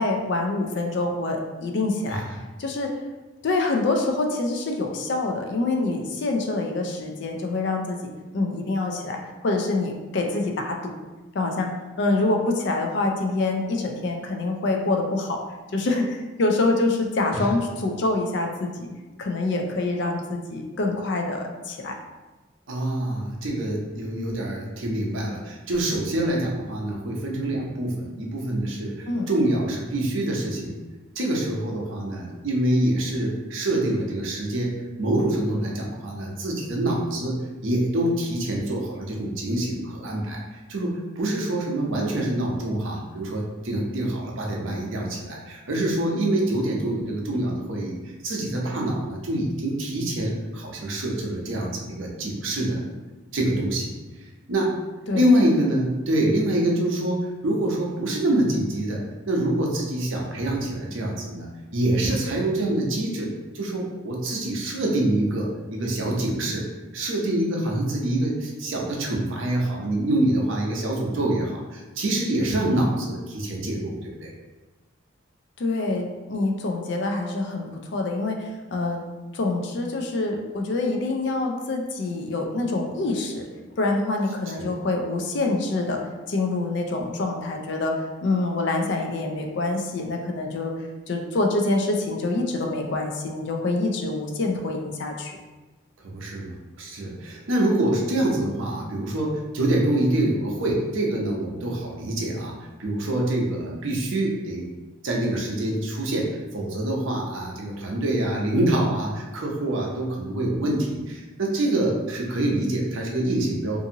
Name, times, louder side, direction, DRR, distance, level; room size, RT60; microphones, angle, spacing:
voice 1, 0.0-2.2 2.6-3.0 3.4-8.0 8.3-10.9 11.3-11.7 12.0-15.4 15.7-18.9 19.2-22.0 29.1-29.3 55.1-55.3 75.6-79.0 79.3-83.5 83.8-86.0 86.3-90.7 91.1-95.4, left 2 dB, 55° left, 3 dB, 0.4 m, -26 dB
voice 2, 22.7-30.7 31.1-40.4 40.7-52.8 53.3-53.9 54.5-54.7 55.1-61.5 61.7-63.3 63.5-66.7 66.9-74.3 84.5-84.7 96.0-102.5 102.8-104.7 105.0-113.8, right 1 dB, 70° right, -1 dB, 0.6 m, -25 dB
2.6 x 2.5 x 2.7 m, 1.2 s
head